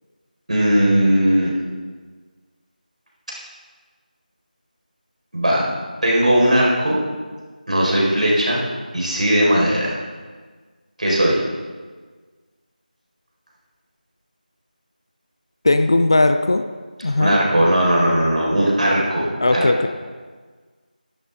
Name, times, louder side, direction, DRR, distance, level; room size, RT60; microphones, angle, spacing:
voice 1, 0.5-1.5 5.3-5.6 6.0-7.0 7.7-8.6 8.9-10.0 11.0-11.4 17.2-19.6, right 1 dB, 55° right, -4 dB, 4.7 m, -18 dB
voice 2, 15.6-16.7 17.0-17.4 19.4-19.9, left 2 dB, 30° left, 8 dB, 0.5 m, -17 dB
15.5 x 12.0 x 3.6 m, 1.5 s
figure-of-eight pair, 165°, 5 cm